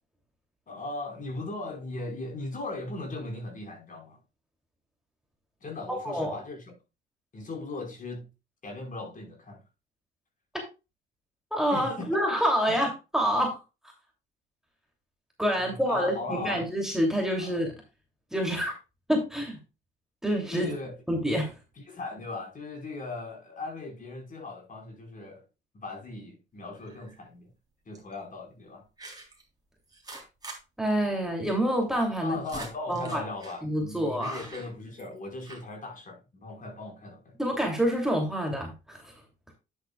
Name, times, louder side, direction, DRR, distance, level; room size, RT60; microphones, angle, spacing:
voice 1, 0.7-4.2 5.6-6.8 7.3-8.3 8.6-9.6 11.7-12.2 12.7-12.8 15.5-16.7 17.4-17.6 20.5-21.0 21.8-25.4 25.7-27.5 27.8-28.8 32.2-37.4, left 2 dB, 40° left, 4.7 m, -38 dB
voice 2, 6.0-6.3 11.5-13.6 15.4-17.7 18.3-18.7 19.1-19.6 20.2-20.7 21.1-21.5 30.8-32.4 32.9-33.2 33.6-34.4 37.4-39.1, equal, ahead, 2.7 m, -27 dB
sound 1, 26.8-27.2 27.9-28.1 29.0-29.4 29.9-30.6 30.9-31.0 31.2-31.3 32.1-33.6 34.2-35.2 35.4-35.7, right 3 dB, 20° right, 3.4 m, -44 dB
9.8 x 8.2 x 2.3 m
cardioid pair, 90°, 20 cm